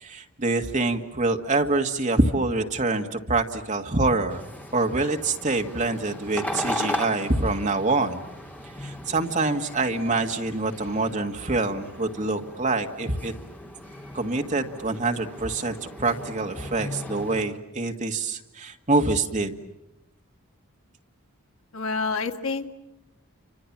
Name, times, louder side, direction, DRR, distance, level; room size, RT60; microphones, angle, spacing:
voice 1, 0.0-4.4 4.7-8.2 8.8-13.3 14.1-19.5, right 3 dB, 35° right, 5 dB, 1.8 m, -25 dB
sound 1, 4.3-17.4, left 1 dB, 10° left, 3.3 m, -37 dB
voice 2, 21.7-22.8, left 4 dB, 70° left, 5 dB, 1.9 m, -28 dB
29.5 x 26.0 x 7.4 m, 0.95 s
head